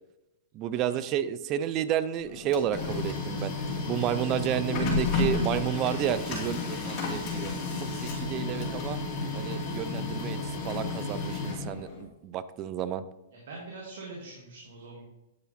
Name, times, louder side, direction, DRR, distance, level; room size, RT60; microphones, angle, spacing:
voice 1, 0.5-3.5 3.9-7.5 7.8-9.0 9.3-10.4 10.6-13.0, right 10 dB, 35° right, 14 dB, 0.4 m, -31 dB
Printer, 2.2-12.0, left 3 dB, 35° left, 2.6 m, -32 dB
voice 2, 13.3-15.0, right 3 dB, 70° right, -2 dB, 1.9 m, -44 dB
9.5 x 5.1 x 4.2 m, 0.97 s
hypercardioid pair, 140°, 0 cm